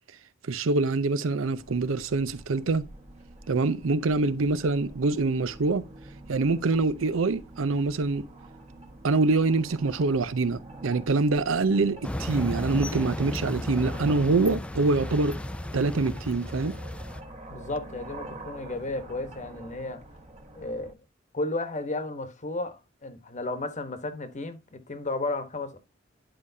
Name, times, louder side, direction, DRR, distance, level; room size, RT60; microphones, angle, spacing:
voice 1, 0.5-2.9 3.5-5.8 6.3-8.3 9.0-15.4 15.7-16.8, right 3 dB, 85° right, 0.6 m, -25 dB
sound 1, 1.6-20.9, right 1 dB, 35° right, 1.3 m, -46 dB
sound 2, 12.0-17.2, left 1 dB, 5° left, 0.3 m, -34 dB
voice 2, 17.5-20.1 20.5-20.9 21.3-25.8, left 2 dB, 40° left, 1.1 m, -33 dB
10.5 x 5.0 x 2.7 m
head